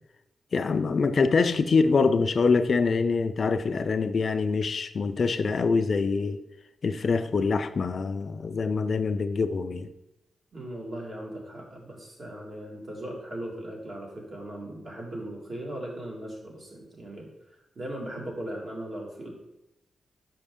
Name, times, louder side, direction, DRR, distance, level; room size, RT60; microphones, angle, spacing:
voice 1, 0.5-6.4 6.8-9.9, left 4 dB, 55° left, 0.4 m, -24 dB
voice 2, 10.5-17.3 17.8-19.3, right 1 dB, 50° right, 1.9 m, -38 dB
5.8 x 5.0 x 3.6 m
cardioid pair, 80°, 0 cm